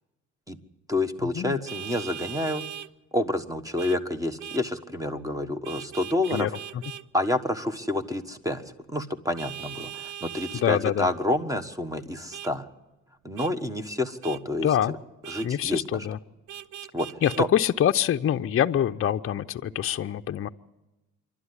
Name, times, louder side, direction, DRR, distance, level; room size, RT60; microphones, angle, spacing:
voice 1, 0.9-2.7 3.1-6.5 7.1-8.6 8.9-12.7 13.2-15.0 15.3-16.1 16.9-17.5, left 1 dB, 10° right, 8 dB, 1.4 m, -28 dB
Vehicle horn car horn honking, 1.7-2.9 3.8-4.0 4.4-4.6 5.6-7.0 9.4-10.7 12.3-12.5 13.4-13.5 14.2-14.4 15.2-15.5 16.5-17.4, right 11 dB, 75° right, 0.7 m, -39 dB
voice 2, 10.5-11.1 14.6-15.0 15.4-16.2 17.2-20.5, left 10 dB, 45° left, 7 dB, 0.6 m, -25 dB
26.5 x 12.0 x 9.8 m, 1.0 s
cardioid pair, 90°, 30 cm